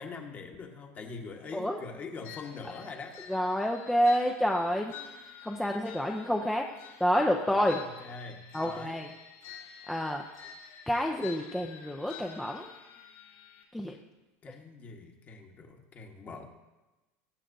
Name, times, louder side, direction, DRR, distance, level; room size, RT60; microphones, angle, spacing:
voice 1, 0.0-3.2 7.5-9.0 14.4-16.5, left 4 dB, 25° left, 4 dB, 1.1 m, -43 dB
sound 1, 2.2-13.6, left 7 dB, 60° left, 3.7 m, -49 dB
voice 2, 3.3-4.9 5.4-6.6 7.0-7.8 8.5-9.1 9.9-10.2 10.9-12.7 13.7-14.0, equal, 5° left, 1 dB, 0.5 m, -28 dB
20.0 x 7.5 x 2.6 m, 1.1 s
cardioid pair, 160°, 6 cm